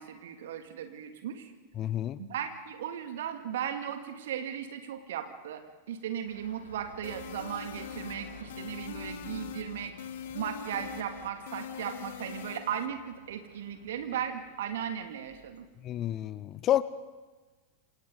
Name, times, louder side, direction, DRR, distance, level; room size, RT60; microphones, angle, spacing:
voice 1, 0.0-1.5 2.2-5.6 5.9-9.9 10.3-15.7, right 9 dB, 60° right, 6 dB, 2.5 m, -37 dB
voice 2, 1.8-2.2 15.8-16.8, left 12 dB, 30° left, 17 dB, 0.8 m, -29 dB
sound 1, 6.2-15.6, left 2 dB, 75° left, 6.9 m, -53 dB
sound 2, 7.0-12.9, left 9 dB, 55° left, 1.4 m, -42 dB
27.5 x 26.5 x 4.0 m, 1.3 s
figure-of-eight pair, 90°, 0 cm